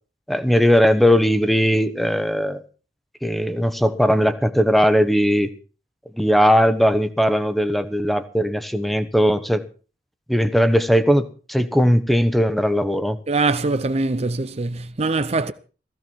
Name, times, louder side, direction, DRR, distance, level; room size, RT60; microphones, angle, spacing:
voice 1, 0.3-2.6 3.2-5.5 6.1-9.7 10.3-13.2, equal, ahead, 1.1 m, -18 dB
voice 2, 13.3-15.5, right 3 dB, 35° right, 0.7 m, -22 dB
15.5 x 15.5 x 4.6 m
head